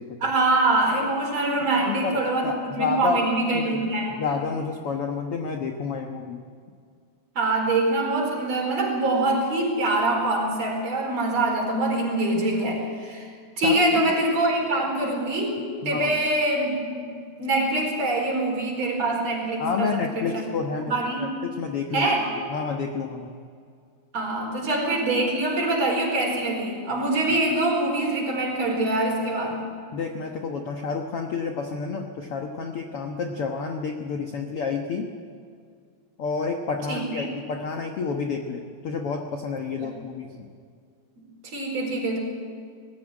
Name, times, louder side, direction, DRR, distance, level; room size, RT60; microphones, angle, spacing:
voice 1, 0.2-4.2 7.4-13.3 13.6-20.4 20.9-21.4 21.9-22.3 24.1-29.6 36.9-37.3 39.8-39.9 41.5-42.2, right 2 dB, 40° right, -1 dB, 5.7 m, -24 dB
voice 2, 1.7-3.3 3.5-3.8 4.1-6.4 13.6-13.8 15.8-16.1 19.6-22.1 22.5-23.3 29.9-35.1 36.2-40.5, left 5 dB, 75° left, 3 dB, 1.3 m, -30 dB
20.0 x 15.5 x 9.9 m, 2.1 s
omnidirectional pair, 4.5 m